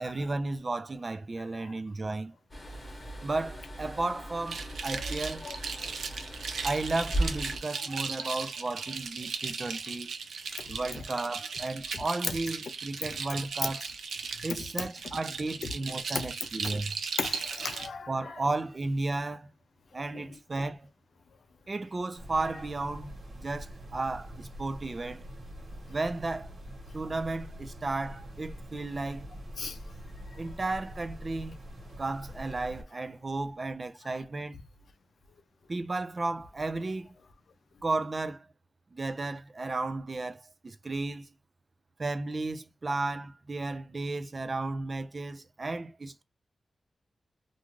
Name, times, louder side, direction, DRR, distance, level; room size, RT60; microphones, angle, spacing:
voice 1, 0.0-2.3 3.2-5.5 6.6-10.1 10.7-13.9 14.4-17.0 18.1-19.5 19.9-20.9 21.7-25.2 25.9-26.5 26.9-29.3 30.4-31.6 32.0-34.5 35.7-37.1 37.8-38.5 38.9-41.3 42.0-46.2, right 2 dB, 30° right, 0.5 m, -34 dB
sound 1, 2.5-7.6, right 1 dB, 20° left, 0.9 m, -37 dB
sound 2, 4.5-17.9, right 5 dB, 85° right, 0.5 m, -37 dB
voice 2, 5.4-5.9 8.2-8.3 16.1-16.3 17.2-18.1 20.1-20.2 29.6-29.8, left 5 dB, 65° left, 0.5 m, -36 dB
sound 3, 22.2-32.8, equal, 60° right, 1.3 m, -45 dB
2.5 x 2.4 x 3.0 m
wide cardioid pair, 130°, 0 cm